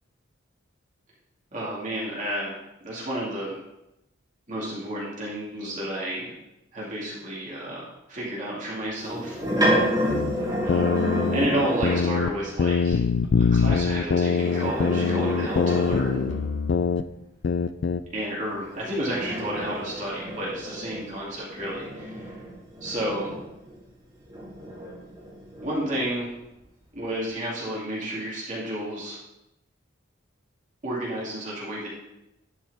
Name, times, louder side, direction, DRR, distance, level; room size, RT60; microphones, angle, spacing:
voice 1, 1.5-3.6 4.5-6.3 6.7-9.7 10.6-11.0 11.3-13.0 13.5-16.2 18.1-22.3 22.8-23.3 25.6-26.3 26.9-29.2 30.8-31.9, right 1 dB, 40° right, -6 dB, 2.5 m, -31 dB
sound 1, 9.0-12.3 14.2-16.6 18.5-23.8 24.3-26.0, equal, 20° right, 3.0 m, -30 dB
sound 2, 10.1-12.3 12.6-17.0 17.4-18.0, left 5 dB, 60° left, 0.4 m, -24 dB
11.0 x 5.0 x 4.1 m, 0.91 s
head